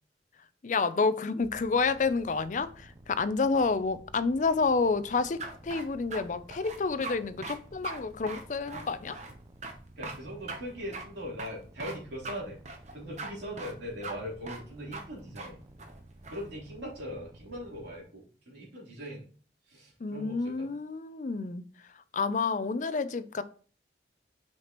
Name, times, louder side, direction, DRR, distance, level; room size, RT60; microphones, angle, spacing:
voice 1, 0.6-9.2 20.0-21.6 22.1-23.4, left 4 dB, 45° left, 0.4 m, -29 dB
sound 1, 1.6-18.0, right 1 dB, 20° right, 0.5 m, -53 dB
sound 2, 5.4-6.2 6.5-7.2 7.4-7.6 7.8-8.0 8.3-9.3 9.6-9.7 10.0-10.2 10.5-10.6 10.9-11.0 11.4-12.0 12.2-12.4 12.7-13.3 13.6-13.7 14.0-14.1 14.5-14.6 14.9-15.0 15.4-15.5 15.8-16.4, right 3 dB, 40° right, 0.9 m, -40 dB
voice 2, 10.0-12.6 12.9-15.6 16.3-19.3 19.6-20.7, equal, 75° right, 3.4 m, -40 dB
6.2 x 5.8 x 3.0 m
head